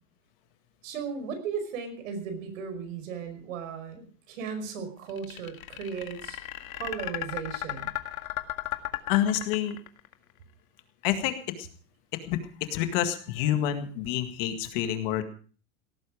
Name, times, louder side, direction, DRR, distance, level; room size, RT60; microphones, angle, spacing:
voice 1, 0.8-6.4 6.7-7.9, right 6 dB, 70° right, 8 dB, 5.3 m, -36 dB
sound 1, 5.1-10.1, left 15 dB, 90° left, 2.0 m, -35 dB
voice 2, 9.1-9.8 11.0-11.7 12.3-12.4 12.7-15.2, left 11 dB, 45° left, 8 dB, 1.9 m, -28 dB
17.5 x 14.5 x 5.0 m, 0.41 s
supercardioid pair, 175°, 40 cm